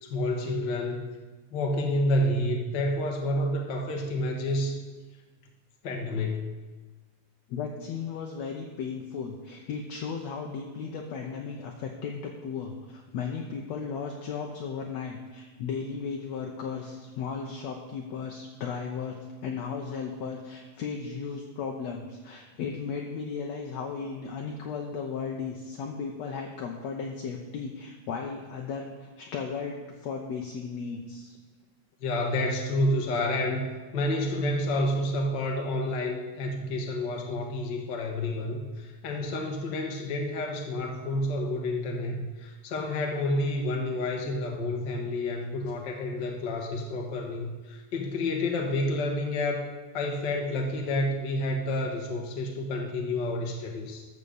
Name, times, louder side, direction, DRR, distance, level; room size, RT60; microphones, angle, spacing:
voice 1, 0.0-1.1 1.5-4.8 5.8-6.4 32.0-33.6 33.9-49.6 49.9-54.0, left 1 dB, 50° left, 1 dB, 1.4 m, -29 dB
voice 2, 7.5-19.2 19.4-31.4, left 5 dB, 70° left, 1 dB, 1.9 m, -35 dB
13.5 x 5.2 x 7.0 m, 1.3 s
omnidirectional pair, 3.6 m